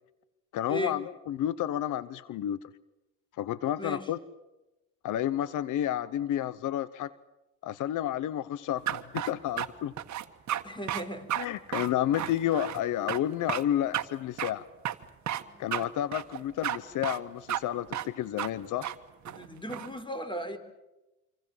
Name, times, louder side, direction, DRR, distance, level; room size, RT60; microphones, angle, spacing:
voice 1, 0.5-2.6 3.4-4.2 5.0-7.1 7.6-9.9 11.4-14.6 15.6-18.9, left 11 dB, 80° left, 17 dB, 1.0 m, -31 dB
sound 1, 8.9-9.7 10.0-10.6 10.9-11.0 11.3-11.5 11.7-12.8 13.1-13.2 13.5-13.6 13.9-14.0 14.4-14.5 14.8-15.4 15.7-15.8 16.1-16.8 17.0-17.2 17.5-17.6 17.9-18.1 18.4-18.5 18.8-18.9 19.2-19.9, right 11 dB, 70° right, 1.6 m, -32 dB
voice 2, 10.6-11.3 15.4-15.6 19.3-20.6, equal, 15° left, 9 dB, 4.4 m, -36 dB
26.5 x 26.0 x 7.4 m, 0.98 s
cardioid pair, 90°, 30 cm